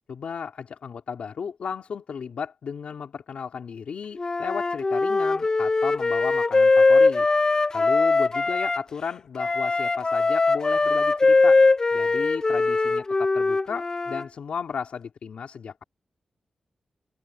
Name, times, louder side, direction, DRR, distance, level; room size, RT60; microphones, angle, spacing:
voice 1, 0.1-7.3 7.7-11.6 11.9-15.8, left 6 dB, 75° left, 3.2 m, -34 dB
Wind instrument woodwind instrument, 4.2-8.8 9.4-14.2, left 3 dB, 30° left, 0.5 m, -21 dB
wide cardioid pair, 105°, 2 cm